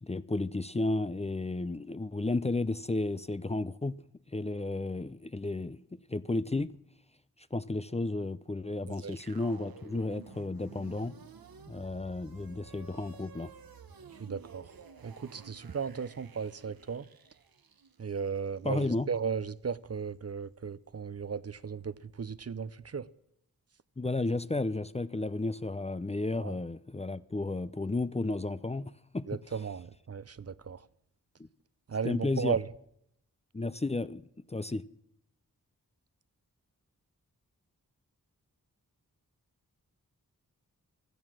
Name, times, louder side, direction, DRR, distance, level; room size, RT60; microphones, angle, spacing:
voice 1, 0.0-4.0 4.3-6.7 7.5-11.1 11.7-13.5 18.6-19.1 24.0-29.4 32.0-32.6 33.5-34.2 34.5-34.8, left 2 dB, 20° left, 0.5 m, -33 dB
sound 1, 8.9-19.1, right 6 dB, 75° right, 1.2 m, -53 dB
voice 2, 14.2-14.7 15.0-17.0 18.0-23.1 26.4-26.5 29.3-30.8 31.9-32.6, right 6 dB, 45° right, 0.6 m, -35 dB
16.0 x 12.5 x 6.3 m
cardioid pair, 60°, 35 cm